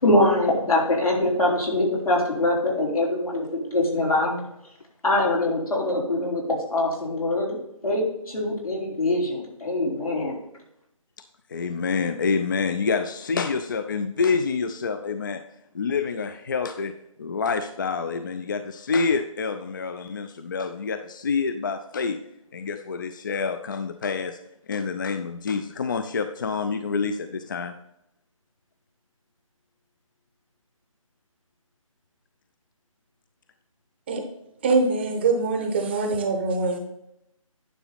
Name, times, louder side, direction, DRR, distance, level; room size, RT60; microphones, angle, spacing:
voice 1, 0.0-4.4 5.0-7.6 7.8-10.4, left 1 dB, 90° left, -3 dB, 3.7 m, -23 dB
voice 2, 11.5-15.4 15.7-22.2 22.5-24.4 24.7-27.8, left 5 dB, 35° left, 9 dB, 0.4 m, -27 dB
voice 3, 34.6-36.8, right 3 dB, 20° right, 5 dB, 0.7 m, -23 dB
10.0 x 6.0 x 4.0 m, 0.81 s
figure-of-eight pair, 160°, 18 cm